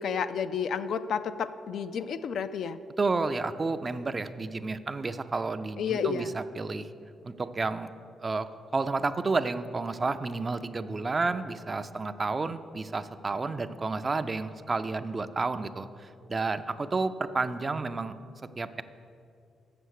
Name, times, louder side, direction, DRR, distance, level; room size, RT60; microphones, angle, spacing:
voice 1, 0.0-2.8 5.8-6.3, left 6 dB, 70° left, 11 dB, 0.3 m, -31 dB
voice 2, 3.0-6.9 7.2-7.9 8.2-18.1 18.6-18.8, right 3 dB, 35° right, 11 dB, 0.4 m, -31 dB
7.1 x 6.7 x 6.4 m, 2.5 s
supercardioid pair, 55°, 0 cm